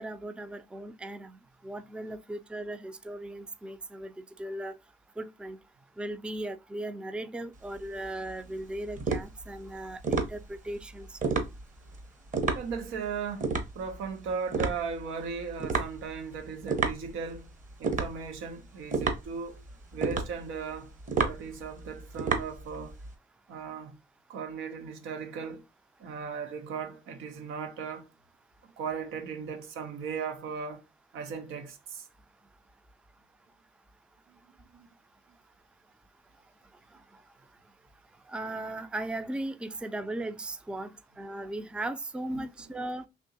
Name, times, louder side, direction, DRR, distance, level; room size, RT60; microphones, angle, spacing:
voice 1, 0.0-1.4 1.6-4.7 5.2-5.6 6.0-11.4 38.3-40.9 41.2-43.0, right 1 dB, 5° right, 0.3 m, -37 dB
sound 1, 7.6-23.1, right 4 dB, 40° right, 0.9 m, -32 dB
voice 2, 12.5-17.5 17.8-19.6 19.9-20.9 21.2-23.0 23.5-24.0 24.3-25.6 26.0-28.1 28.8-30.8 31.1-32.1 34.3-34.4 34.7-34.9 42.3-42.4, right 6 dB, 90° right, 0.7 m, -37 dB
3.5 x 2.9 x 2.7 m
cardioid pair, 90°, 20 cm